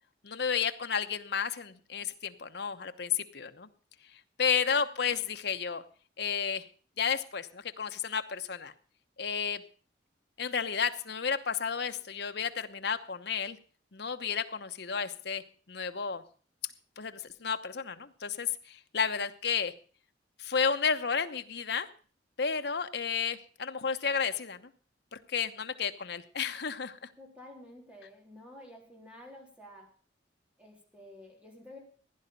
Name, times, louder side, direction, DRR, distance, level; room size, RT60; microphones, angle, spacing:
voice 1, 0.2-3.7 4.4-5.8 6.2-6.6 7.0-8.7 9.2-9.6 10.4-13.6 13.9-16.2 17.0-19.7 20.4-21.9 22.4-24.7 25.1-27.1, left 6 dB, 65° left, 9 dB, 1.0 m, -32 dB
voice 2, 4.8-5.2 27.2-29.9 30.6-31.8, left 1 dB, 5° right, 0 dB, 3.9 m, -51 dB
15.5 x 11.0 x 5.4 m, 0.41 s
head